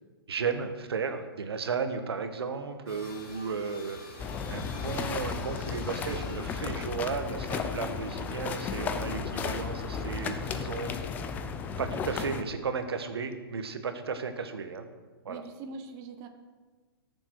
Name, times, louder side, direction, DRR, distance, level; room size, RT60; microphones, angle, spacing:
voice 1, 0.3-10.9 11.8-14.9 15.2-15.4, right 5 dB, 85° right, 8 dB, 1.3 m, -34 dB
sound 1, 2.9-11.8, left 2 dB, 35° left, 3.3 m, -49 dB
sound 2, 4.2-12.4, left 6 dB, 15° left, 0.5 m, -34 dB
voice 2, 15.3-16.3, right 4 dB, 25° right, 5 dB, 0.9 m, -42 dB
20.0 x 7.0 x 4.6 m, 1.4 s
hypercardioid pair, 155°, 13 cm